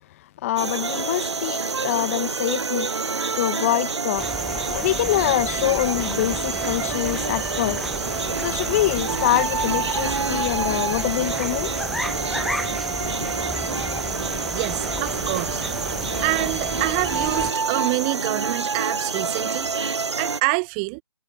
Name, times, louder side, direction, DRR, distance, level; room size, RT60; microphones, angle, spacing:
voice 1, 0.4-2.9 3.4-7.8 8.4-11.9 13.0-13.3, left 15 dB, 30° left, 0.9 m, -25 dB
sound 1, 0.6-20.4, right 4 dB, 80° right, 0.7 m, -27 dB
sound 2, 4.2-17.5, left 1 dB, ahead, 0.9 m, -34 dB
voice 2, 14.5-15.6 16.2-19.8 20.1-21.0, right 32 dB, 20° right, 0.6 m, -26 dB
figure-of-eight pair, 135°, 14 cm